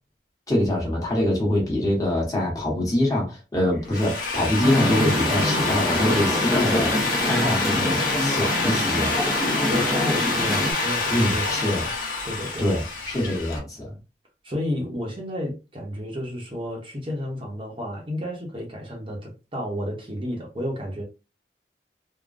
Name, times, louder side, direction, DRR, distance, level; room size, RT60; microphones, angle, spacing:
voice 1, 0.5-9.1 11.1-11.8 12.6-14.0, left 1 dB, 20° left, 1.1 m, -24 dB
Drill, 3.7-13.6, left 3 dB, 50° left, 0.9 m, -26 dB
Musical instrument, 4.6-10.7, left 1 dB, ahead, 0.6 m, -25 dB
voice 2, 9.7-11.8 12.2-12.7 14.4-21.0, equal, 30° right, 0.8 m, -32 dB
3.6 x 2.1 x 2.4 m
head